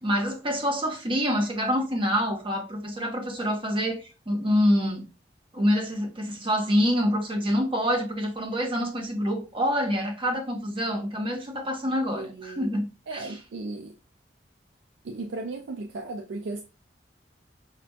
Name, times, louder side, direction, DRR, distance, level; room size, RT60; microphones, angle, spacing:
voice 1, 0.0-5.1 5.5-13.4, equal, 30° right, 0.9 m, -26 dB
voice 2, 12.1-12.7 13.1-13.9 15.0-16.6, right 2 dB, 85° right, 0.4 m, -36 dB
5.7 x 2.5 x 2.2 m
head